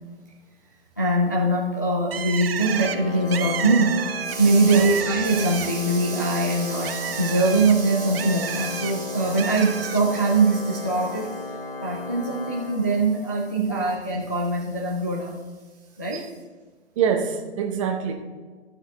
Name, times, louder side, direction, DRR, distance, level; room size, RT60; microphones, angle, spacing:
voice 1, 1.0-4.0 4.2-11.3 11.8-15.3 16.0-16.2, right 2 dB, 20° left, -3 dB, 0.3 m, -22 dB
Bird, 2.1-5.9 6.3-8.9 9.4-10.0, right 8 dB, 55° right, 0.6 m, -31 dB
Organ, 2.5-13.4, left 3 dB, 50° left, 1.7 m, -36 dB
voice 2, 17.0-18.1, right 7 dB, 30° right, 4 dB, 0.9 m, -25 dB
13.0 x 6.4 x 3.4 m, 1.4 s
hypercardioid pair, 145°, 35 cm